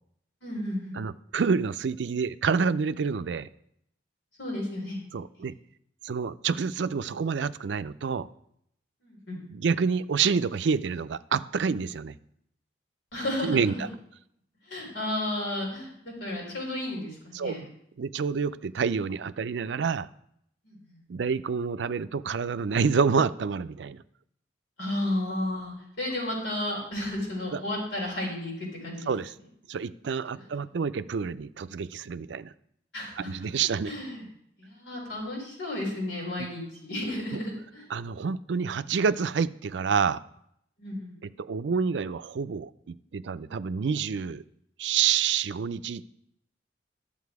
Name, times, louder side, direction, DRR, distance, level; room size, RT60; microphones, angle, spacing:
voice 1, 0.4-1.0 4.4-5.0 5.4-5.5 9.0-9.4 13.1-13.9 14.7-17.6 20.6-21.0 24.8-29.1 32.9-33.3 33.9-34.2 34.6-37.8 40.8-41.2, left 1 dB, 90° left, -2 dB, 4.7 m, -33 dB
voice 2, 0.9-3.5 5.1-5.5 6.0-8.3 9.5-12.2 13.4-13.9 17.3-17.6 18.0-20.1 21.1-24.0 27.5-27.6 29.1-29.3 29.7-32.5 33.2-33.9 37.9-40.2 41.2-44.4 44.8-46.0, right 6 dB, 75° right, 14 dB, 0.4 m, -28 dB
11.5 x 7.3 x 4.7 m, 0.72 s
head